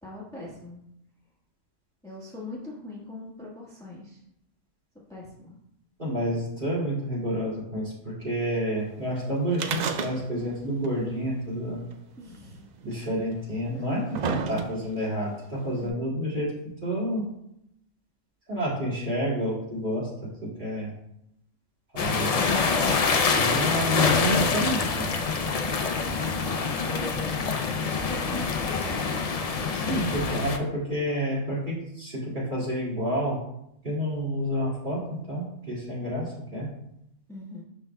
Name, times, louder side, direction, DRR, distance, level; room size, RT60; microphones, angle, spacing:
voice 1, 0.0-0.8 2.0-4.2 5.1-5.6 12.2-12.7 13.7-13.8 15.7-16.0 25.9-26.3 26.8-29.1 29.3-30.1 37.3-37.6, left 1 dB, 5° left, -6 dB, 1.2 m, -40 dB
voice 2, 6.0-11.8 12.8-16.5 16.8-17.2 18.5-20.1 20.4-20.9 21.9-22.3 23.2-25.1 29.7-33.4 33.8-36.7, equal, 40° right, -7 dB, 2.4 m, -29 dB
sound 1, 9.5-10.6 10.8-10.9 11.9-12.0 12.9-13.0 13.7-15.0 15.9-16.0, right 6 dB, 85° right, 0.3 m, -30 dB
sound 2, 22.0-30.6, left 4 dB, 65° left, 0.3 m, -26 dB
11.5 x 4.0 x 2.2 m, 0.79 s
omnidirectional pair, 1.3 m